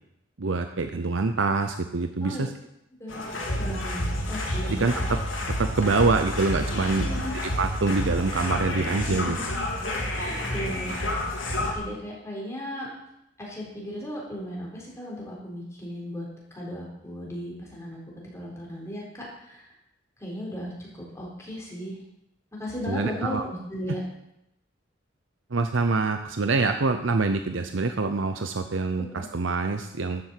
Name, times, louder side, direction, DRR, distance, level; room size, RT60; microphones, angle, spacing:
voice 1, 0.4-2.5 4.7-4.9 5.6-7.1 7.6-9.4 22.9-23.4 25.5-30.2, right 3 dB, 75° right, 7 dB, 0.8 m, -25 dB
sound 1, 3.1-11.7, left 1 dB, 90° left, 3.6 m, -29 dB
voice 2, 3.6-5.1 6.9-7.3 10.1-10.9 11.2-12.9 13.4-18.0 18.3-19.7 20.2-22.0 22.6-24.0 29.1-29.2, equal, 15° left, -3 dB, 4.2 m, -36 dB
12.5 x 7.4 x 7.7 m, 0.83 s
head